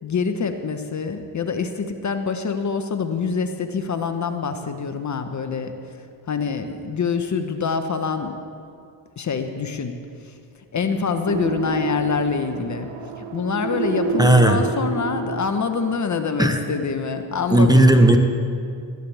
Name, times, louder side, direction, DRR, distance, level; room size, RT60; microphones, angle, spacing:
voice 1, 0.0-5.7 6.3-8.4 9.2-9.9 10.2-10.3 10.7-12.9 13.2-17.9, left 5 dB, 35° left, 7 dB, 1.1 m, -25 dB
sound 1, 11.3-15.9, right 4 dB, 55° right, 1.2 m, -28 dB
voice 2, 14.2-14.6 16.4-16.6 17.5-18.2, right 1 dB, 10° right, 5 dB, 1.0 m, -14 dB
17.0 x 13.5 x 3.5 m, 2.4 s
supercardioid pair, 65°, 49 cm